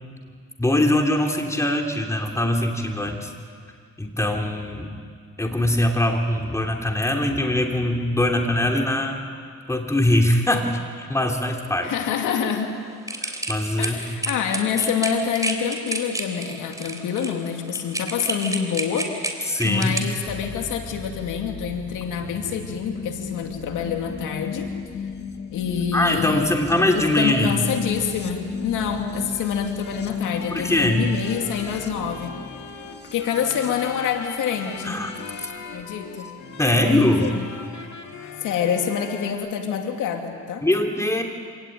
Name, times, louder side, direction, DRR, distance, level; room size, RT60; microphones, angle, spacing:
voice 1, 0.6-3.3 4.0-4.9 5.4-9.2 9.7-11.9 13.2-14.0 19.5-20.0 25.9-27.6 30.5-31.0 34.8-35.1 36.6-37.4 40.6-41.2, left 1 dB, 10° left, 2 dB, 3.1 m, -22 dB
voice 2, 11.8-12.8 13.8-24.7 25.5-26.6 26.9-32.4 33.1-35.0 35.7-36.3 36.8-37.4 38.4-40.7, left 7 dB, 85° left, 4 dB, 2.5 m, -27 dB
sound 1, 13.1-20.0, right 1 dB, 10° right, 3.6 m, -29 dB
sound 2, 20.3-37.3 38.5-38.6, left 5 dB, 35° left, 1.5 m, -36 dB
sound 3, 28.8-39.3, left 5 dB, 65° left, 2.9 m, -39 dB
26.0 x 17.5 x 9.3 m, 2.1 s
cardioid pair, 90°, 30 cm